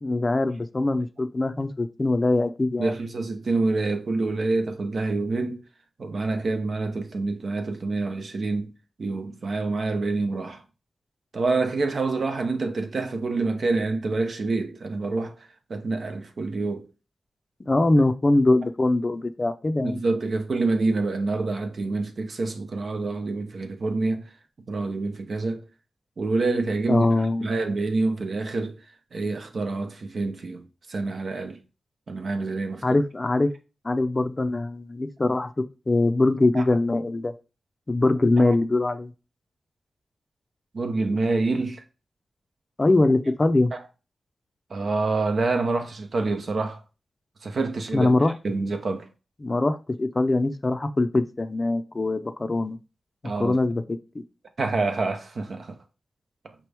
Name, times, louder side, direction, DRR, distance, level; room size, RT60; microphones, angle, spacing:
voice 1, 0.0-2.9 17.7-20.0 26.9-27.5 32.8-33.5 33.8-35.5 35.9-37.3 37.9-39.1 42.8-43.7 47.9-48.3 49.4-52.8 53.4-53.8, left 2 dB, 30° left, 0.5 m, -22 dB
voice 2, 2.8-5.6 6.0-8.7 9.0-10.6 11.3-15.3 15.7-16.9 19.8-24.3 24.7-25.6 26.2-28.8 29.1-31.6 32.1-32.9 36.5-36.6 38.4-38.5 40.7-41.8 43.7-43.8 44.7-46.8 47.4-48.1 48.4-49.1 53.2-53.6 54.6-55.8 56.4-56.5, right 3 dB, 65° right, 0.8 m, -27 dB
5.2 x 3.0 x 3.4 m
cardioid pair, 75°, 0 cm